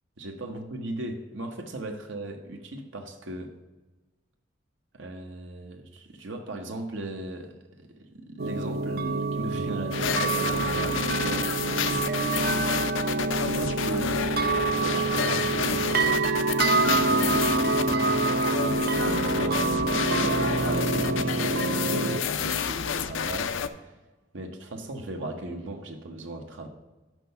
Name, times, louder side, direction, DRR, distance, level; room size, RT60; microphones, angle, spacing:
voice 1, 0.2-3.5 4.9-11.5 13.5-14.2 14.5-16.4 16.8-23.9 24.3-26.7, right 1 dB, 75° right, 3 dB, 0.9 m, -37 dB
sound 1, 8.4-22.2, right 3 dB, 50° right, 0.5 m, -26 dB
sound 2, 9.9-23.7, left 7 dB, 80° left, 0.5 m, -30 dB
6.0 x 5.5 x 6.7 m, 1.2 s
head